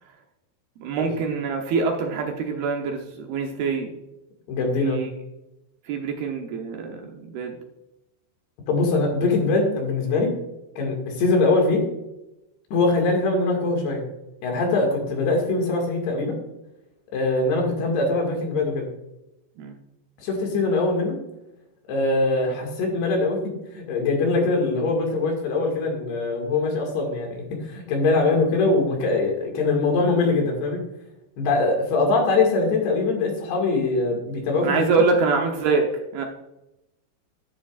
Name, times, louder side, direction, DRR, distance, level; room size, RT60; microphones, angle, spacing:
voice 1, 0.8-3.9 4.8-5.1 5.9-7.6 19.6-19.8 34.6-36.3, right 4 dB, 70° right, 2 dB, 2.6 m, -25 dB
voice 2, 4.5-5.0 8.7-10.4 10.8-11.9 12.7-14.0 14.4-16.4 17.1-18.9 20.2-21.2 21.9-30.8 31.4-35.1, left 3 dB, 70° left, 1 dB, 3.9 m, -22 dB
11.5 x 10.0 x 2.5 m, 0.90 s
omnidirectional pair, 5.1 m